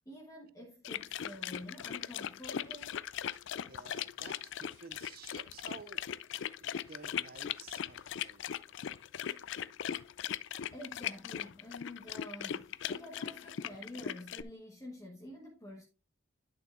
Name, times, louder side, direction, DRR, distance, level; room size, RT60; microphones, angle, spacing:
voice 1, 0.0-3.1 10.7-15.8, left 1 dB, 15° left, 1.2 m, -48 dB
sound 1, 0.8-14.4, left 9 dB, 60° left, 0.3 m, -39 dB
voice 2, 3.6-6.0 6.6-8.7, right 5 dB, 45° right, 0.5 m, -52 dB
11.0 x 6.4 x 2.5 m
head